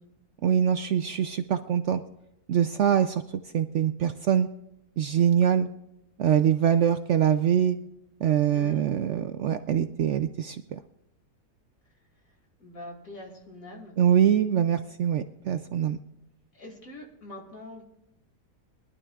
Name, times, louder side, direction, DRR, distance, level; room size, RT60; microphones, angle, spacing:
voice 1, 0.4-2.0 2.5-3.2 3.5-4.5 5.0-5.7 6.2-7.8 8.2-10.8 14.0-16.0, right 9 dB, 70° right, 10 dB, 0.7 m, -23 dB
voice 2, 8.5-8.8 12.6-13.9 16.5-17.8, left 1 dB, 55° left, 1 dB, 2.9 m, -43 dB
22.5 x 11.5 x 2.4 m, 0.86 s
omnidirectional pair, 1.7 m